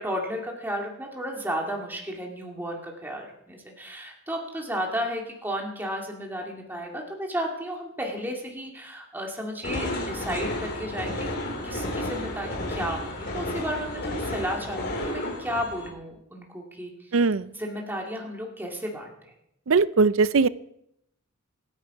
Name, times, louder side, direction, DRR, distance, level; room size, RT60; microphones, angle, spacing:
voice 1, 0.0-11.3 11.6-17.2 17.5-19.3, equal, 10° right, 0 dB, 2.2 m, -33 dB
sound 1, 9.6-15.9, left 1 dB, 45° left, 4.3 m, -32 dB
voice 2, 17.1-17.4 19.7-20.5, right 4 dB, 65° right, 17 dB, 0.5 m, -20 dB
25.5 x 9.9 x 4.9 m, 0.78 s
head